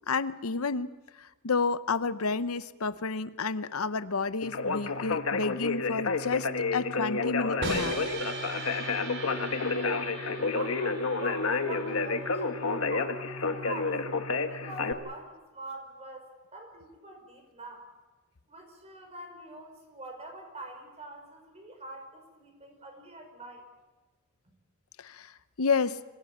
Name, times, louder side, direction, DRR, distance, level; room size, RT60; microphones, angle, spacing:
voice 1, 0.1-0.9 1.2-7.9 25.0-25.3 25.6-26.0, left 4 dB, 90° left, 14 dB, 0.8 m, -30 dB
Conversation, 4.4-14.9, left 4 dB, 70° left, 1.5 m, -30 dB
sound 1, 7.6-13.6, right 2 dB, 60° right, 3.8 m, -39 dB
voice 2, 10.5-14.0 14.5-17.9 18.5-23.7, right 2 dB, 30° right, 4 dB, 5.5 m, -44 dB
25.5 x 17.0 x 8.7 m, 1.2 s
head